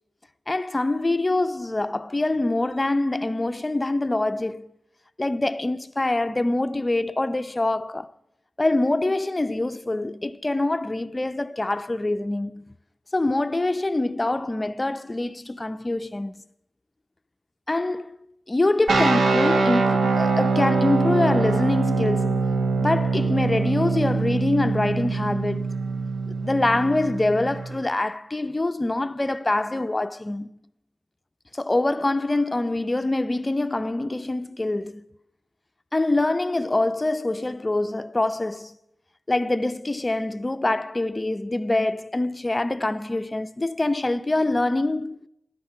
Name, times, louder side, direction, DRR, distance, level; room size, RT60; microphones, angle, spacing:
voice 1, 0.5-4.7 5.2-8.1 8.6-12.7 13.1-16.3 17.7-18.2 18.5-22.4 22.8-25.7 26.4-30.6 31.5-35.1 35.9-38.8 39.3-45.3, left 2 dB, 20° left, 0.6 m, -25 dB
sound 1, 18.9-27.8, right 4 dB, 85° right, 1.4 m, -23 dB
16.5 x 12.0 x 5.6 m
wide cardioid pair, 100°, 0 cm